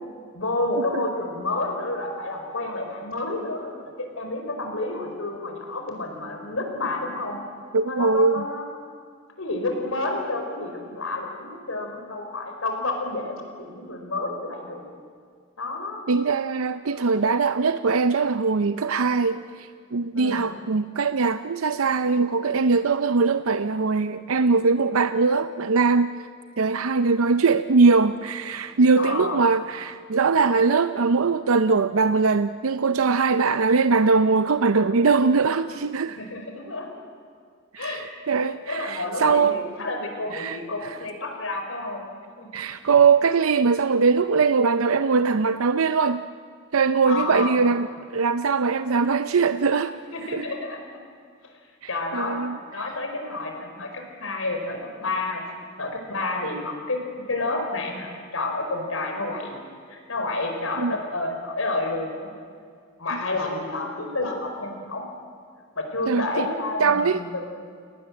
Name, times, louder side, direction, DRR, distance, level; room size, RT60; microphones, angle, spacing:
voice 1, 0.3-7.4 7.9-8.7 9.4-14.9 15.6-16.0 16.8-17.1 20.1-20.5 29.0-29.4 36.2-37.0 37.8-38.0 38.7-42.0 42.4-42.6 47.0-47.7 50.1-51.0 51.4-51.5 51.9-52.4 52.7-55.4 55.8-57.0 57.3-59.6 59.9-62.3 63.0-65.0 65.7-67.6, left 2 dB, 75° left, 3 dB, 4.9 m, -30 dB
voice 2, 7.7-8.4 16.1-26.2 26.6-36.2 37.7-39.6 40.3-40.6 40.9-41.0 42.5-46.2 46.7-47.9 48.1-50.0 50.3-50.5 52.1-52.6 60.8-60.9 66.1-66.5 66.8-67.2, right 4 dB, 85° right, 11 dB, 0.6 m, -21 dB
30.0 x 19.0 x 7.7 m, 2.1 s
head